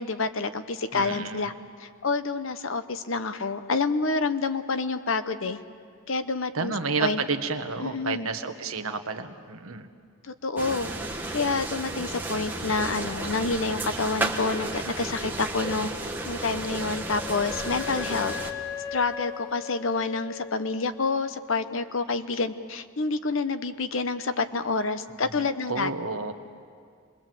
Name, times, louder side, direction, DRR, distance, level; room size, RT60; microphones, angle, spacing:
voice 1, 0.0-1.5 1.8-5.6 6.1-6.7 7.0-7.2 7.8-8.3 10.2-10.9 11.3-15.9 16.2-18.3 18.9-25.9, left 3 dB, 60° left, 10 dB, 0.9 m, -28 dB
voice 2, 0.9-1.5 6.5-9.9 25.3-25.4 25.7-26.3, right 4 dB, 70° right, 7 dB, 1.3 m, -30 dB
sound 1, 10.6-18.5, right 2 dB, 10° right, 1.4 m, -33 dB
Wind instrument woodwind instrument, 16.4-21.1, left 9 dB, 40° left, 1.4 m, -38 dB
26.5 x 21.0 x 7.7 m, 2.2 s
head